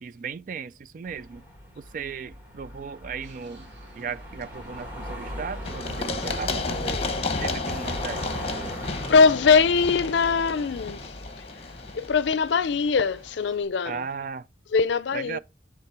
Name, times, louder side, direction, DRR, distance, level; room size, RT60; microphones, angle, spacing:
voice 1, 0.0-1.4 1.8-3.7 3.9-7.0 7.4-8.2 13.8-14.5 15.1-15.4, right 6 dB, 45° right, 0.3 m, -36 dB
sound 1, 1.0-9.6, equal, 10° right, 2.1 m, -40 dB
sound 2, 3.2-13.6, right 1 dB, 75° right, 2.3 m, -54 dB
Run, 5.6-13.3, left 3 dB, 35° left, 0.9 m, -32 dB
voice 2, 9.1-11.1 11.9-14.0 14.7-15.4, left 5 dB, 75° left, 0.4 m, -21 dB
9.5 x 3.6 x 4.6 m
head